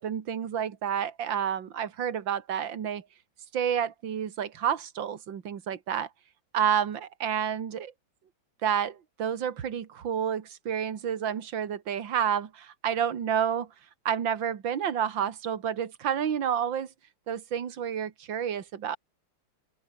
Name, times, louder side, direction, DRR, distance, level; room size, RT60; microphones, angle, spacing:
voice 1, 0.0-3.0 3.5-6.1 6.5-7.9 8.6-13.7 14.1-16.9 17.3-19.0, right 8 dB, 75° right, 2.4 m, -29 dB
open air
omnidirectional pair, 2.1 m